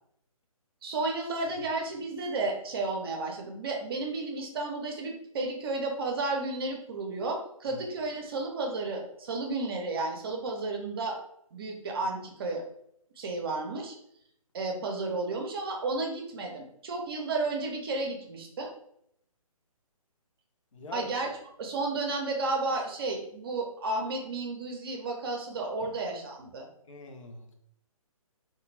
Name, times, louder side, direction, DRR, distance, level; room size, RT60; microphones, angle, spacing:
voice 1, 0.8-11.2 11.5-12.6 13.2-14.0 14.5-18.7 20.9-21.3 21.6-26.7, right 3 dB, 40° right, 2 dB, 0.6 m, -32 dB
voice 2, 20.7-21.1 25.8-25.9 26.9-27.5, left 2 dB, 60° left, 5 dB, 0.6 m, -43 dB
2.4 x 2.2 x 3.1 m, 0.73 s
figure-of-eight pair, 145°, 19 cm